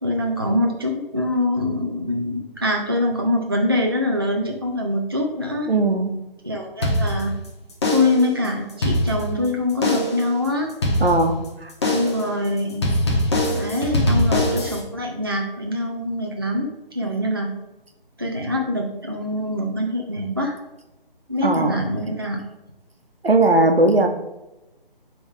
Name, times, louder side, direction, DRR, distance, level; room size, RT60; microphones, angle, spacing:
voice 1, 0.0-5.7 6.4-7.3 7.9-10.7 11.9-12.9 13.5-17.5 18.2-20.6 21.3-22.4, left 1 dB, 25° right, 1 dB, 0.4 m, -24 dB
voice 2, 5.7-6.1 11.0-11.7 21.4-21.8 23.2-24.1, right 2 dB, 85° right, 5 dB, 1.0 m, -18 dB
sound 1, 6.8-7.5 7.8-8.3 8.7-9.5 9.8-10.3 10.8-11.5 11.8-12.3 12.8-14.8, left 1 dB, 30° left, 0.9 m, -22 dB
8.7 x 3.5 x 3.4 m, 0.97 s
figure-of-eight pair, 155°, 29 cm